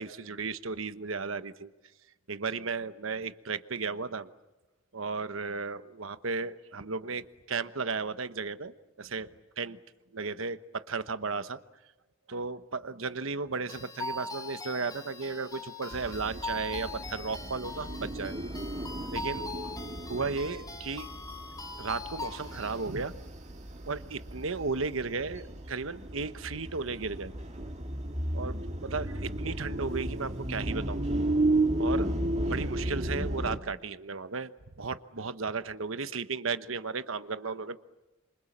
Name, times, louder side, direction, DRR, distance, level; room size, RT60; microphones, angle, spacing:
voice 1, 0.0-1.7 2.3-4.3 4.9-9.3 9.6-9.8 10.1-11.6 12.3-18.3 19.1-19.5 20.1-21.1 21.8-23.1 23.9-27.3 28.3-31.0 31.8-32.1 32.4-34.5 34.8-37.8, right 4 dB, 70° right, 12 dB, 1.1 m, -34 dB
sound 1, 13.7-22.8, left 2 dB, 20° left, 2.9 m, -41 dB
sound 2, 15.9-33.6, right 1 dB, 35° right, 2.1 m, -34 dB
28.0 x 26.0 x 7.4 m, 1.1 s
head